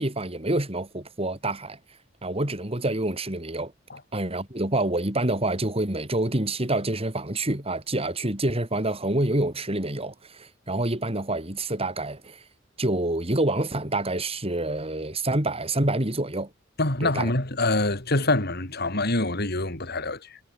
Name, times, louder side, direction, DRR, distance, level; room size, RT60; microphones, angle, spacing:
voice 1, 0.0-1.8 2.2-3.7 4.1-12.4 12.8-16.5 17.0-17.3, right 2 dB, 30° right, 3.7 m, -27 dB
voice 2, 16.8-20.4, left 2 dB, 55° left, 4.8 m, -25 dB
head